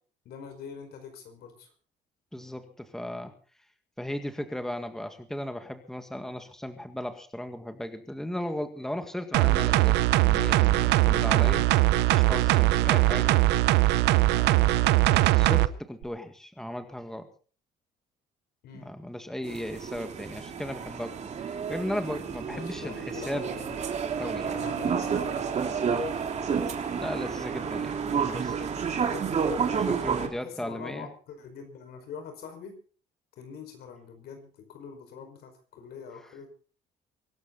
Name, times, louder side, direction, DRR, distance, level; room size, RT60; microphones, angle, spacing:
voice 1, 0.3-1.7 11.4-11.5 11.9-12.3 18.6-18.9 22.5-23.8 24.3-25.7 29.3-29.4 30.2-32.8 33.4-36.5, left 6 dB, 70° left, 7 dB, 5.2 m, -44 dB
voice 2, 2.3-3.3 4.0-11.6 12.1-13.4 14.3-17.3 18.7-23.5 24.2-24.6 27.0-28.8 29.7-31.1, left 1 dB, 5° left, 7 dB, 1.9 m, -36 dB
sound 1, 9.3-15.7 16.0-16.1, right 17 dB, 90° right, 0.8 m, -21 dB
sound 2, 19.4-30.3, right 6 dB, 40° right, 2.8 m, -30 dB
24.0 x 12.0 x 4.0 m, 0.40 s
cardioid pair, 110°, 17 cm